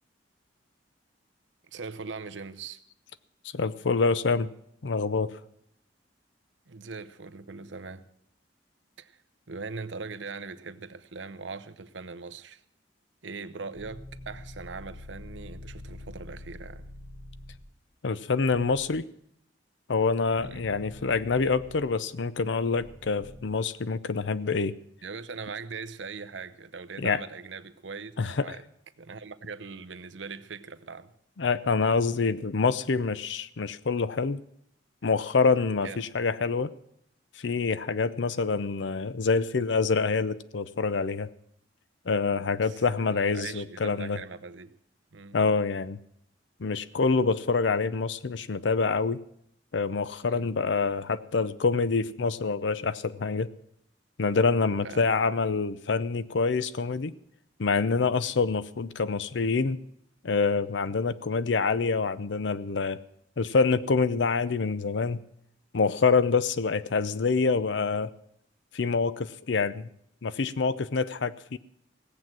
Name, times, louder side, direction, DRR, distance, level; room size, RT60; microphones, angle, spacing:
voice 1, 1.7-2.8 6.7-8.1 9.0-12.6 13.2-16.8 20.4-20.8 25.0-28.6 29.0-31.1 35.8-36.0 42.3-42.8 43.1-44.7 45.1-45.4 50.3-50.5 54.8-55.1, right 4 dB, 85° right, 0.8 m, -41 dB
voice 2, 3.5-4.5 4.8-5.3 18.0-19.0 19.9-24.7 27.0-27.2 28.2-28.5 31.4-34.4 35.0-36.7 37.4-41.3 42.1-44.2 45.3-46.0 46.6-49.2 49.7-53.5 54.2-57.1 57.6-59.8 60.2-63.0 63.4-65.2 65.7-68.1 68.7-69.9 70.2-71.6, left 4 dB, 75° left, 0.6 m, -26 dB
sound 1, 13.7-17.6 18.5-18.9 20.4-21.8 22.7-23.4, left 1 dB, 45° left, 3.8 m, -45 dB
17.0 x 7.8 x 7.4 m
head